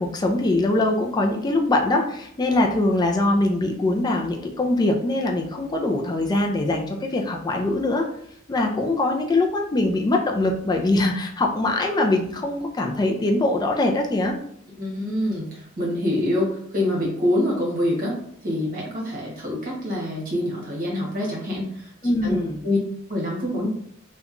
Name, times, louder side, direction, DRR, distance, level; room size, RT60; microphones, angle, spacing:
voice 1, 0.0-8.1 8.5-14.4 22.0-22.6, left 2 dB, 20° left, 2 dB, 0.3 m, -22 dB
voice 2, 14.8-18.2 18.4-22.4 22.6-22.8 23.1-23.7, left 1 dB, 45° right, -3 dB, 1.0 m, -26 dB
2.9 x 2.2 x 2.4 m, 0.67 s
head